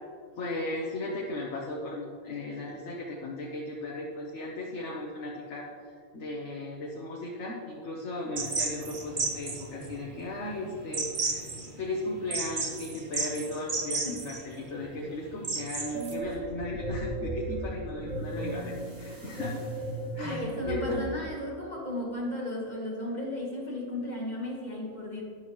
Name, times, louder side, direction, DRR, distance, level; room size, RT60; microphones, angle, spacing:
voice 1, 0.4-19.7 20.2-21.0, left 2 dB, 60° left, -1 dB, 1.3 m, -36 dB
sound 1, 8.4-16.1, right 3 dB, 45° right, 1.1 m, -34 dB
sound 2, 15.9-21.1, right 1 dB, 60° right, 3.6 m, -36 dB
voice 2, 20.2-25.2, left 1 dB, 35° left, -2 dB, 1.6 m, -35 dB
12.0 x 10.0 x 3.1 m, 2.1 s
omnidirectional pair, 1.4 m